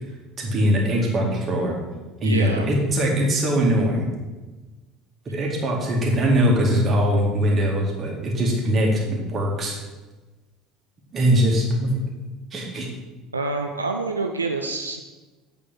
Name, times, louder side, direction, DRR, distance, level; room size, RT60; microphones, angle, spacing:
voice 1, 0.4-1.8 2.2-4.1 5.3-9.8 11.1-11.9 12.5-12.9, equal, 30° right, -2 dB, 2.2 m, -21 dB
voice 2, 2.2-2.6 13.3-15.0, right 3 dB, 85° right, 3 dB, 0.4 m, -27 dB
8.5 x 4.3 x 5.9 m, 1.2 s
figure-of-eight pair, 65°, 0 cm